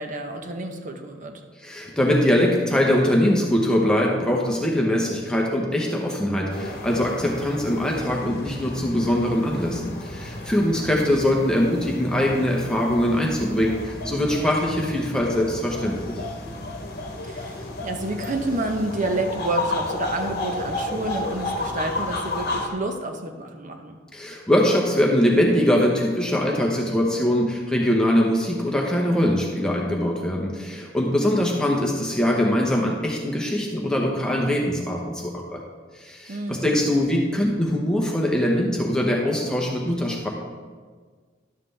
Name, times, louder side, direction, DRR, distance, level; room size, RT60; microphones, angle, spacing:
voice 1, 0.0-1.4 10.7-10.9 17.2-24.0 36.3-36.8, right 2 dB, 40° right, 5 dB, 0.8 m, -29 dB
voice 2, 1.6-16.2 24.1-35.6 35.9-40.3, left 1 dB, 5° left, -2 dB, 0.8 m, -22 dB
sound 1, 6.5-22.7, left 2 dB, 55° left, 1.1 m, -32 dB
11.5 x 7.5 x 3.3 m, 1.5 s
head